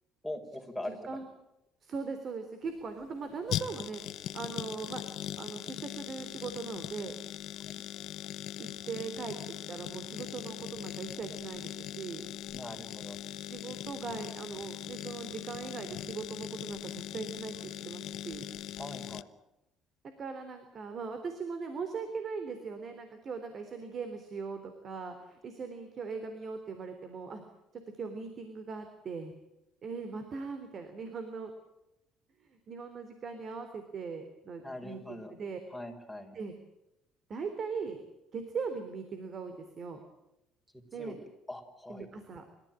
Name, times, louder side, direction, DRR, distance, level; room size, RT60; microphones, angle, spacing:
voice 1, 0.2-1.2 12.5-13.2 18.8-19.3 34.6-35.3 35.7-36.4 41.0-41.2 41.5-42.1, left 1 dB, ahead, 4 dB, 5.4 m, -42 dB
voice 2, 0.8-1.3 1.8-4.0 4.3-5.0 5.4-7.1 8.6-9.4 9.7-12.2 13.3-18.5 20.2-27.4 28.0-29.3 29.8-31.5 32.5-35.6 36.3-36.6 37.3-38.0 38.3-40.0 40.9-41.2 41.9-42.4, right 5 dB, 45° right, 7 dB, 3.5 m, -40 dB
sound 1, 2.6-19.2, left 12 dB, 65° left, 0.9 m, -40 dB
29.0 x 14.5 x 9.0 m, 0.90 s
cardioid pair, 105°, 0 cm